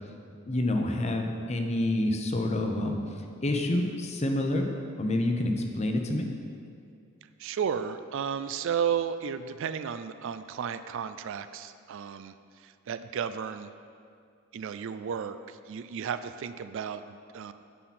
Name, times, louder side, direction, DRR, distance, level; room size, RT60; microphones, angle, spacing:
voice 1, 0.5-3.0 3.4-4.7 5.0-6.3, left 1 dB, 30° left, 4 dB, 0.7 m, -28 dB
voice 2, 7.4-13.7 14.5-17.5, right 7 dB, 60° right, 12 dB, 0.3 m, -33 dB
10.0 x 7.7 x 4.2 m, 2.3 s
head